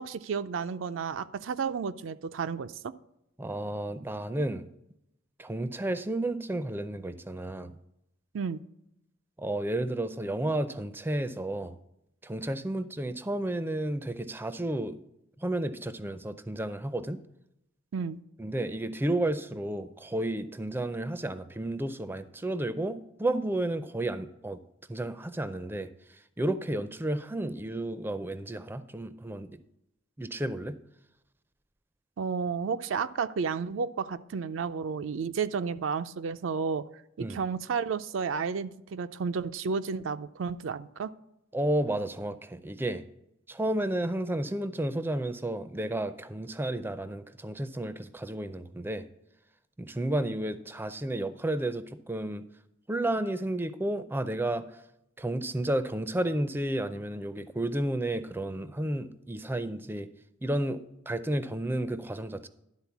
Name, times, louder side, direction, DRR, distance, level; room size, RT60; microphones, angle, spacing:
voice 1, 0.0-2.9 8.3-8.6 17.9-18.2 32.2-36.8 37.2-41.1, right 5 dB, 80° right, 11 dB, 0.4 m, -32 dB
voice 2, 3.4-4.7 5.4-7.8 9.4-11.8 12.2-15.0 15.4-17.2 18.4-24.6 24.9-25.9 26.4-29.5 30.2-30.8 37.2-37.4 41.5-43.0 43.5-49.1 49.8-52.4 52.9-54.6 55.2-60.1 60.4-62.5, right 1 dB, 10° right, 12 dB, 0.4 m, -32 dB
11.5 x 4.0 x 7.0 m, 0.82 s
head